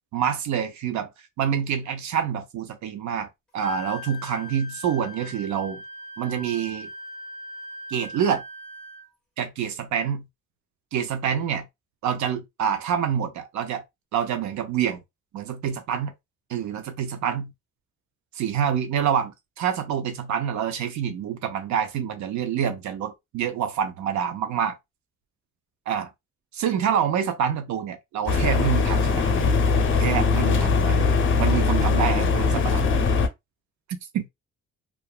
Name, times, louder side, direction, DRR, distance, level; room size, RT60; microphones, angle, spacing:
voice 1, 0.1-1.1 1.4-3.3 3.5-5.8 6.2-6.9 7.9-8.4 9.4-10.2 10.9-11.6 12.0-13.8 14.1-15.0 15.3-16.1 16.5-17.5 18.3-24.8 25.9-26.1 26.5-29.5 29.9-31.1 31.4-32.8 34.1-34.3, right 8 dB, 70° right, 0.6 m, -27 dB
Wind instrument woodwind instrument, 3.6-9.1, left 2 dB, 5° left, 1.3 m, -40 dB
sound 1, 28.3-33.3, left 4 dB, 40° left, 0.6 m, -21 dB
2.8 x 2.4 x 2.2 m
cardioid pair, 90°, 30 cm